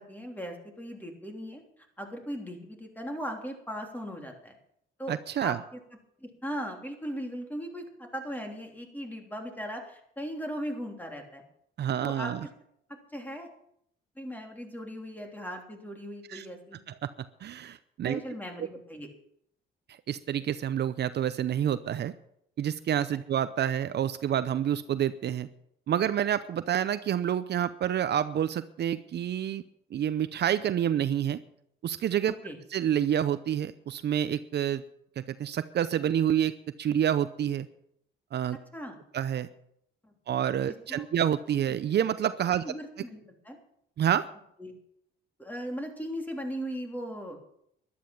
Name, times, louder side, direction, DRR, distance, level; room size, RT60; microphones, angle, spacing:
voice 1, 0.0-1.6 2.0-4.6 5.0-5.8 6.2-11.4 12.0-12.3 13.1-13.5 14.2-16.8 18.0-19.1 32.4-32.6 38.7-39.0 40.0-40.1 40.9-41.1 42.6-43.6 44.6-44.8 45.4-47.4, equal, 10° left, 3 dB, 3.2 m, -38 dB
voice 2, 5.1-5.6 11.8-12.4 16.3-16.5 16.9-17.1 17.4-18.2 20.1-22.1 22.6-25.5 25.9-29.6 29.9-31.4 31.8-32.3 32.7-34.8 35.2-36.5 36.8-37.7 38.3-38.6 39.1-39.5 40.3-42.6 44.0-44.3, right 10 dB, 60° right, 13 dB, 0.7 m, -28 dB
12.5 x 11.5 x 7.1 m, 0.73 s
cardioid pair, 90°, 20 cm